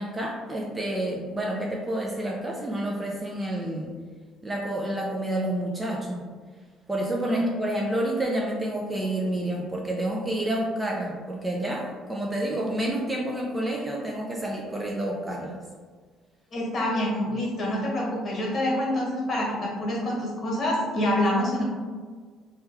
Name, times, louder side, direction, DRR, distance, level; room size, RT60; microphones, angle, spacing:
voice 1, 0.0-3.9 4.4-6.2 6.9-15.6, right 1 dB, 15° right, -2 dB, 0.4 m, -29 dB
voice 2, 16.5-21.6, left 1 dB, 35° left, -3 dB, 1.2 m, -26 dB
3.0 x 2.3 x 3.3 m, 1.5 s
cardioid pair, 130°, 0 cm